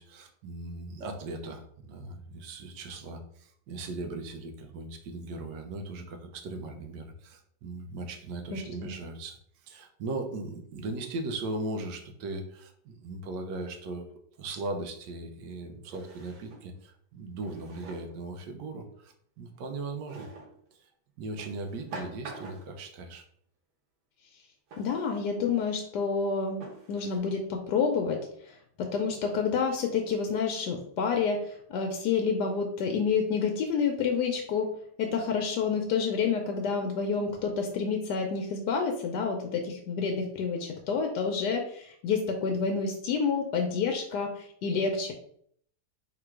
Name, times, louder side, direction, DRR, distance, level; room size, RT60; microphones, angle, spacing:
voice 1, 0.0-20.3 20.7-20.9 21.2-23.2, right 2 dB, 90° right, 4 dB, 1.4 m, -38 dB
voice 2, 8.5-8.9 24.8-26.6 26.9-34.7 35.0-45.1, left 5 dB, 85° left, 3 dB, 1.2 m, -29 dB
Drawer open or close, 14.5-14.6 15.9-16.7 17.4-18.2 20.1-20.6 21.4-22.8 24.7-25.2 25.9-26.0 26.6-27.2, right 3 dB, 75° right, 1.5 m, -45 dB
3.7 x 3.0 x 4.5 m, 0.65 s
omnidirectional pair, 1.8 m